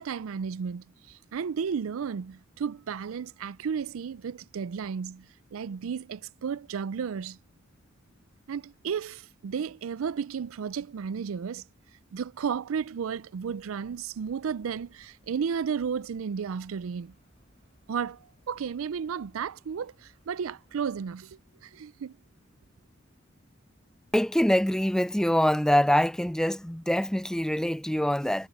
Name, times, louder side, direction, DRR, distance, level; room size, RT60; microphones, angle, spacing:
voice 1, 0.0-7.4 8.5-11.6 12.1-17.1 17.9-18.2 18.5-22.2, right 6 dB, 85° right, 0.4 m, -33 dB
sound 1, 13.4-21.2, equal, 30° left, 6.2 m, -64 dB
voice 2, 24.1-28.5, equal, 5° left, 0.4 m, -24 dB
head